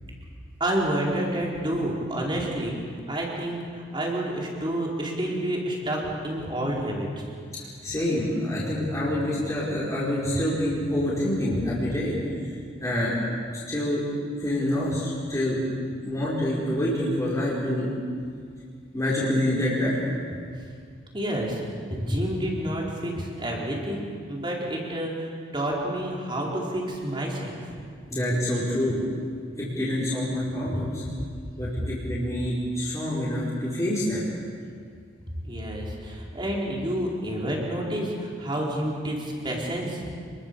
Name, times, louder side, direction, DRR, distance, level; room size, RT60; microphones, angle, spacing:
voice 1, 0.6-2.8 3.1-7.1 21.1-21.6 21.9-24.0 24.3-27.7 35.4-40.1, right 1 dB, 25° right, -3 dB, 4.8 m, -29 dB
voice 2, 7.6-12.2 12.8-13.2 13.7-14.0 14.4-15.6 16.0-17.9 18.9-20.1 22.0-22.2 28.1-29.0 29.6-31.0 31.6-34.3, left 1 dB, 15° left, -8 dB, 5.2 m, -26 dB
29.5 x 22.0 x 7.1 m, 2.2 s
head